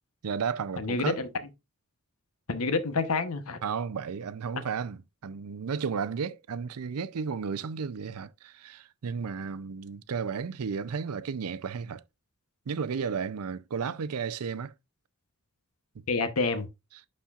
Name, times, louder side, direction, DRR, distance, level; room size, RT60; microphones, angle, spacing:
voice 1, 0.2-1.2 3.6-12.0 12.7-14.7, right 6 dB, 85° right, 0.5 m, -33 dB
voice 2, 0.8-1.3 2.5-3.6 16.1-16.7, left 3 dB, 75° left, 0.9 m, -28 dB
11.5 x 4.3 x 2.4 m
head